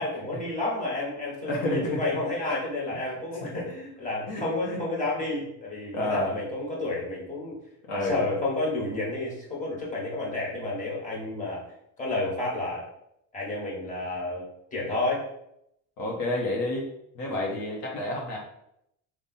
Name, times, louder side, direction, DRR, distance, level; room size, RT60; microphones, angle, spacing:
voice 1, 0.0-7.6 7.9-11.6 12.0-12.8 13.3-15.2 17.2-17.6, left 2 dB, 20° left, -5 dB, 1.5 m, -30 dB
voice 2, 1.4-2.0 4.3-4.8 5.9-6.3 7.8-8.2 16.0-16.9 17.1-18.4, left 1 dB, 65° left, -1 dB, 1.1 m, -30 dB
3.7 x 2.5 x 4.2 m, 0.78 s
cardioid pair, 125°, 37 cm